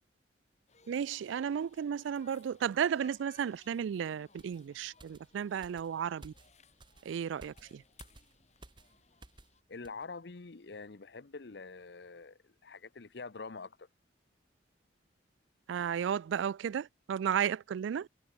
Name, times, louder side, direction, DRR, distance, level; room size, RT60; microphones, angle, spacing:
sound 1, 0.7-9.6, left 6 dB, 35° left, 3.3 m, -64 dB
voice 1, 0.9-6.3 7.1-7.8 15.7-18.1, right 8 dB, 85° right, 0.3 m, -33 dB
sound 2, 4.4-9.6 9.8-10.0, right 2 dB, 25° right, 1.2 m, -57 dB
voice 2, 9.7-13.9, left 4 dB, 65° left, 0.8 m, -46 dB
head